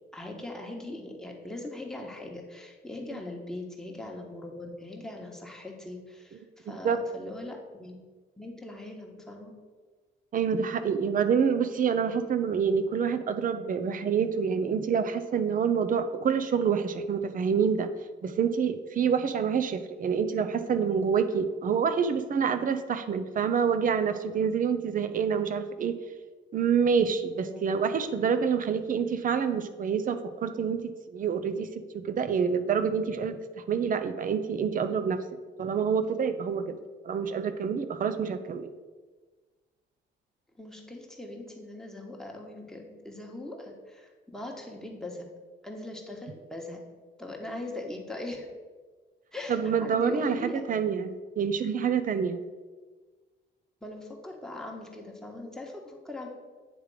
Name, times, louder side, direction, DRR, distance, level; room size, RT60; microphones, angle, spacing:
voice 1, 0.1-7.9 8.4-9.5 27.4-27.7 40.6-45.3 45.6-46.8 47.2-48.5 49.3-50.6 53.8-56.3, left 2 dB, 5° left, 0 dB, 1.3 m, -40 dB
voice 2, 6.7-7.0 10.3-17.9 18.2-26.0 26.5-35.2 35.6-36.8 37.0-38.7 49.5-52.4, right 6 dB, 45° right, 11 dB, 0.6 m, -27 dB
9.0 x 3.3 x 4.8 m, 1.4 s
cardioid pair, 90°, 20 cm